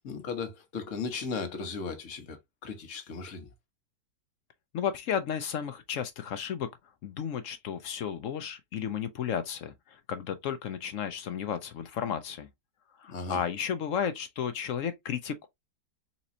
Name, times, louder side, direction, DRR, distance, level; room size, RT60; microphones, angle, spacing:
voice 1, 0.0-3.5 13.1-13.4, left 4 dB, 50° left, 1.3 m, -36 dB
voice 2, 4.7-6.7 7.0-12.5 13.0-15.5, left 8 dB, 65° left, 0.8 m, -33 dB
4.2 x 3.0 x 2.6 m
omnidirectional pair, 1.9 m